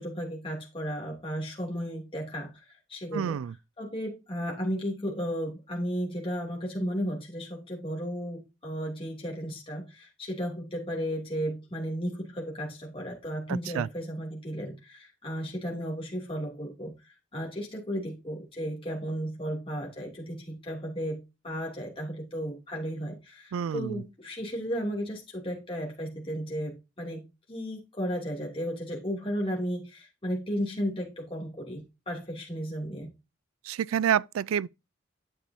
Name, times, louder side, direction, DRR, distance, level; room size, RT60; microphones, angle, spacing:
voice 1, 0.0-3.4 3.8-33.1, equal, 25° left, 2.7 m, -34 dB
voice 2, 3.1-3.5 13.5-13.9 23.5-24.0 33.7-34.7, right 9 dB, 90° right, 0.3 m, -28 dB
10.0 x 7.5 x 2.7 m
head